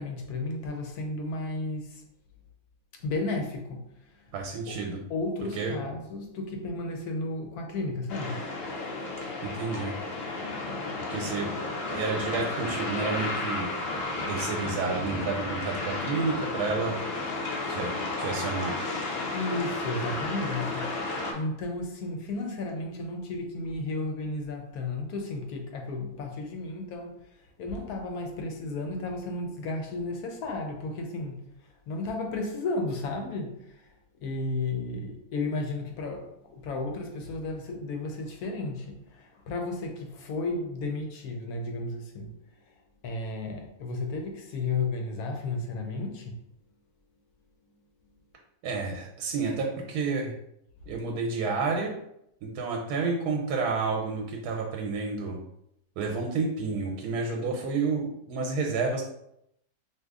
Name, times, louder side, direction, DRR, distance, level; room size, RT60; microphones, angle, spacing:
voice 1, 0.0-2.0 3.0-3.8 4.2-4.3 4.7-4.8 5.1-8.5 19.3-20.9 21.3-31.5 31.9-33.9 34.2-42.3 42.7-42.8 43.0-46.4, left 2 dB, 75° left, 1.1 m, -33 dB
voice 2, 4.3-5.0 5.6-5.8 9.2-10.0 11.1-11.5 11.9-13.7 14.3-17.0 17.7-17.9 18.2-18.7 48.6-50.4 50.9-51.9 52.4-55.4 56.0-59.0, right 4 dB, 90° right, 1.1 m, -30 dB
sound 1, 8.1-21.3, left 2 dB, 55° left, 0.7 m, -33 dB
2.8 x 2.5 x 3.5 m
omnidirectional pair, 1.6 m